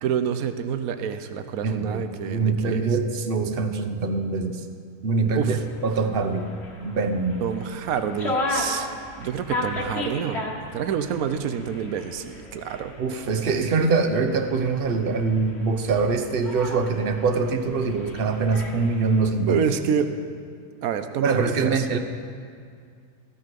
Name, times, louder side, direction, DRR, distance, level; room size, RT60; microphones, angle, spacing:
voice 1, 0.0-2.9 5.4-5.6 7.4-8.9 9.2-10.4 10.7-12.9 19.4-20.1 20.8-21.8, right 8 dB, 85° right, 9 dB, 1.1 m, -27 dB
voice 2, 1.6-4.6 5.0-6.5 6.8-7.4 13.0-19.7 21.2-22.0, right 4 dB, 50° right, 7 dB, 0.9 m, -24 dB
sound 1, 5.4-19.3, left 2 dB, 50° left, 1.7 m, -35 dB
15.0 x 9.7 x 5.3 m, 2.2 s
omnidirectional pair, 1.5 m